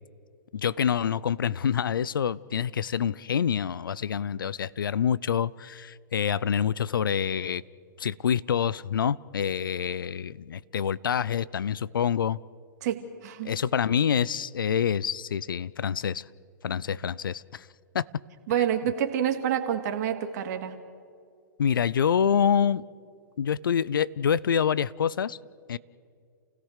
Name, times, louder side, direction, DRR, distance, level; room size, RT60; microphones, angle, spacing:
voice 1, 0.5-7.6 8.0-12.4 13.4-16.2 16.6-17.7 17.9-18.1 21.6-22.8 23.4-25.4 25.7-25.8, left 8 dB, 80° left, 21 dB, 0.6 m, -26 dB
voice 2, 12.8-13.5 18.5-20.8, right 9 dB, 50° right, 6 dB, 2.4 m, -28 dB
29.0 x 17.5 x 6.6 m, 2.3 s
hypercardioid pair, 120°, 11 cm